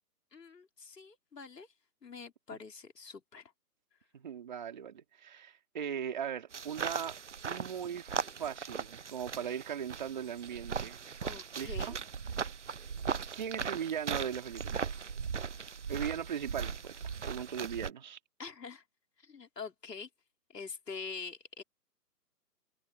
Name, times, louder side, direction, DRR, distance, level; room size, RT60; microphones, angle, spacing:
voice 1, 0.3-1.7 2.0-3.5 11.2-12.0 18.4-18.8 19.2-20.1 20.5-21.6, left 5 dB, 85° left, 3.6 m, -45 dB
voice 2, 4.1-7.2 7.4-8.1 8.4-11.0 11.6-12.0 13.3-14.9 15.9-16.9 17.2-18.2, right 8 dB, 30° right, 2.9 m, -38 dB
sound 1, 6.5-17.9, right 6 dB, 50° right, 0.7 m, -38 dB
hypercardioid pair, 175°, 47 cm